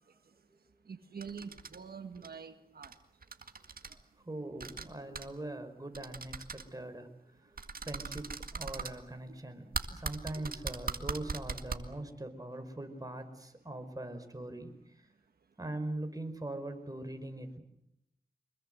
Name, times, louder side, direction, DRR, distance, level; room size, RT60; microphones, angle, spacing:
voice 1, 0.9-2.9 9.3-9.4 10.4-10.5 10.8-10.9 11.2-11.3, right 6 dB, 90° right, 7 dB, 1.6 m, -46 dB
sound 1, 1.2-1.8 2.1-2.3 2.8-3.0 3.2-3.9 4.6-4.9 5.1-5.3 5.9-6.6 7.6-8.9 9.7-11.8, right 4 dB, 70° right, 2.0 m, -39 dB
voice 2, 4.2-7.1 7.4-14.7 15.6-17.6, right 1 dB, 25° right, 6 dB, 5.1 m, -42 dB
25.0 x 21.5 x 7.9 m, 0.80 s
cardioid pair, 45°, 15 cm